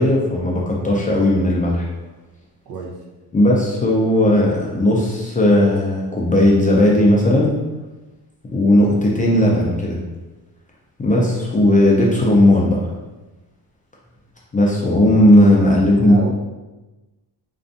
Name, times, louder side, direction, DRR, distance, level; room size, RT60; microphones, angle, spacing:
voice 1, 0.0-1.9 3.3-7.6 8.5-10.0 11.0-12.9 14.5-16.2, left 1 dB, 20° left, -3 dB, 0.4 m, -16 dB
voice 2, 2.7-3.0 15.8-16.3, right 5 dB, 60° right, 0 dB, 0.6 m, -31 dB
2.5 x 2.3 x 2.4 m, 1.1 s
cardioid pair, 95°, 41 cm